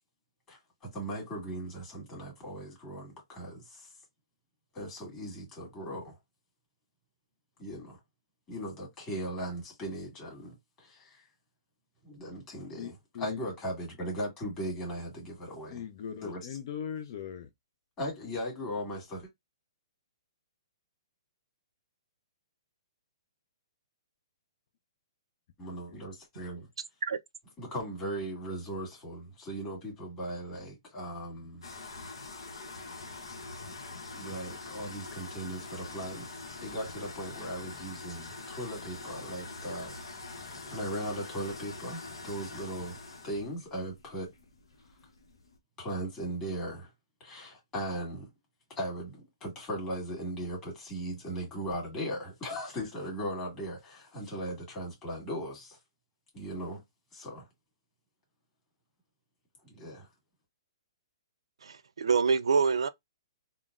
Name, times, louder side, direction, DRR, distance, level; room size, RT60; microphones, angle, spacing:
voice 1, 0.5-3.9 4.7-6.1 7.6-8.0 8.5-11.3 12.0-15.8 16.2-16.4 18.0-19.3 25.6-26.7 27.6-31.6 34.1-36.3 36.6-40.0 40.3-40.4 40.7-43.0 43.2-44.3 45.8-46.9 47.2-48.3 48.7-55.8 56.3-56.8 57.1-57.5 59.6-60.1, equal, 20° left, 1.9 m, -38 dB
voice 2, 12.8-13.4 15.7-17.5, left 8 dB, 50° left, 0.4 m, -39 dB
sound 1, 31.6-45.6, left 3 dB, 90° left, 0.8 m, -44 dB
voice 3, 61.6-62.9, right 5 dB, 85° right, 0.3 m, -26 dB
3.8 x 2.1 x 2.4 m
hypercardioid pair, 145°, 3 cm